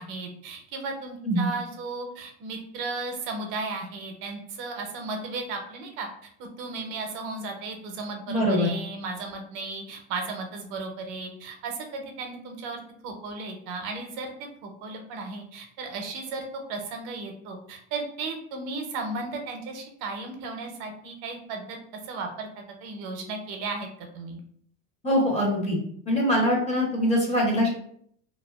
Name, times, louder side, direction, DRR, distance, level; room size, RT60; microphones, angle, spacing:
voice 1, 0.0-6.1 6.4-21.8 22.0-24.4, right 3 dB, 60° right, 3 dB, 0.6 m, -35 dB
voice 2, 8.3-8.7 25.0-25.8 26.1-27.7, equal, 20° left, -1 dB, 0.6 m, -23 dB
2.4 x 2.3 x 2.3 m, 0.64 s
supercardioid pair, 130°, 34 cm